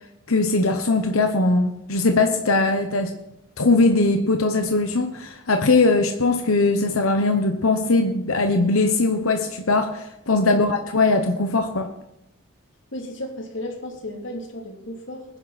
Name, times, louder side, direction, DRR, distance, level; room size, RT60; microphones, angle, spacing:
voice 1, 0.3-3.1 3.6-11.9, left 3 dB, 80° left, 6 dB, 1.2 m, -20 dB
voice 2, 12.9-15.4, left 1 dB, 60° left, 1 dB, 3.1 m, -34 dB
20.5 x 10.5 x 4.3 m, 0.89 s
head